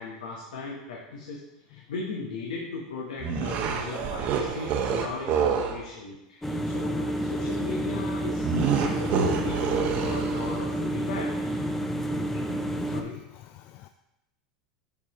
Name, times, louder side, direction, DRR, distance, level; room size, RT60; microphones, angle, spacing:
voice 1, 0.0-11.6 12.3-12.6 12.9-13.2, left 4 dB, 85° left, -1 dB, 1.0 m, -37 dB
Monster Laugh, 3.2-5.8 8.4-10.7, right 6 dB, 50° right, 0.9 m, -27 dB
sound 1, 6.4-13.0, right 1 dB, 10° left, 0.6 m, -30 dB
voice 2, 11.7-13.0 13.5-13.9, left 15 dB, 50° left, 8 dB, 0.3 m, -46 dB
7.2 x 5.9 x 3.0 m, 0.91 s
hypercardioid pair, 105°, 4 cm